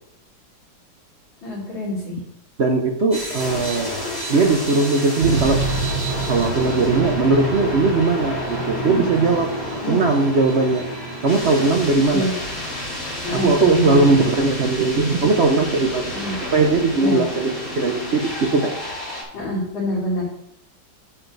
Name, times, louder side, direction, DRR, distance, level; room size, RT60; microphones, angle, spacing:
voice 1, 1.4-2.2 8.9-9.1 9.8-10.0 12.1-12.3 13.2-14.2 16.1-16.3 17.0-17.3 19.3-20.3, left 1 dB, 80° left, -11 dB, 4.2 m, -26 dB
voice 2, 2.6-4.0 4.3-5.6 6.3-9.5 9.9-10.8 11.2-12.3 13.3-16.2 16.5-17.5 17.8-18.7, right 3 dB, 55° right, 4 dB, 0.7 m, -19 dB
sound 1, 3.1-19.2, left 1 dB, 20° left, 4.3 m, -30 dB
sound 2, 5.2-12.7 13.4-13.5, right 5 dB, 70° right, 1.4 m, -29 dB
10.0 x 6.8 x 3.9 m, 0.77 s
omnidirectional pair, 2.1 m